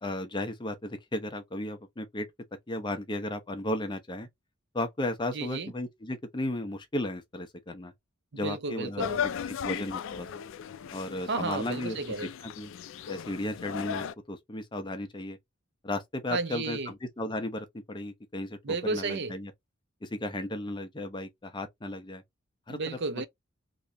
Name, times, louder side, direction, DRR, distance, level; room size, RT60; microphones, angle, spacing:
voice 1, 0.0-2.3 2.7-4.3 4.7-7.9 8.3-9.1 9.6-10.4 10.9-12.0 12.4-12.7 13.1-15.4 15.8-19.5 20.0-22.2 22.7-22.8, left 1 dB, 20° left, 0.7 m, -35 dB
voice 2, 5.3-5.7 8.3-9.2 11.3-12.3 16.3-16.9 18.6-19.4 22.7-23.3, right 3 dB, 55° right, 0.6 m, -32 dB
sound 1, 9.0-14.1, left 8 dB, 60° left, 0.3 m, -36 dB
3.0 x 2.7 x 3.3 m
head